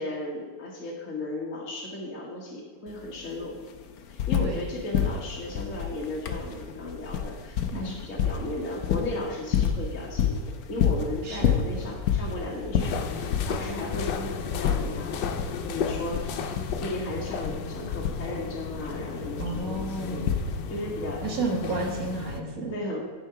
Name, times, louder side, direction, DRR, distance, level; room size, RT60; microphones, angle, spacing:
voice 1, 0.0-3.6 4.1-20.3 20.7-21.2 21.6-21.9 22.6-23.0, left 1 dB, 45° left, -3 dB, 1.6 m, -35 dB
sound 1, 2.9-3.0 3.2-4.7 4.9-20.9 22.0-22.1, left 8 dB, 65° left, 1.0 m, -29 dB
voice 2, 11.2-11.6 19.4-20.4 21.2-22.8, right 3 dB, 50° right, 0 dB, 1.9 m, -32 dB
sound 2, 12.8-22.4, left 6 dB, 90° left, 1.4 m, -34 dB
11.0 x 4.7 x 5.5 m, 1.5 s
omnidirectional pair, 1.9 m